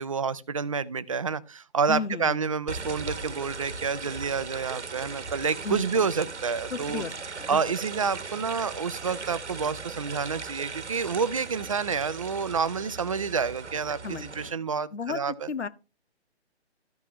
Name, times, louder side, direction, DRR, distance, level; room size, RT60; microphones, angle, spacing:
voice 1, 0.0-7.0 7.5-15.5, right 5 dB, 30° right, 0.4 m, -29 dB
voice 2, 1.9-2.4 5.6-6.1 6.7-7.1 7.4-7.7 14.0-14.5 14.9-15.7, left 5 dB, 85° left, 1.0 m, -34 dB
sound 1, 2.7-14.5, right 4 dB, 85° right, 1.2 m, -38 dB
14.0 x 5.8 x 3.0 m
figure-of-eight pair, 150°, 34 cm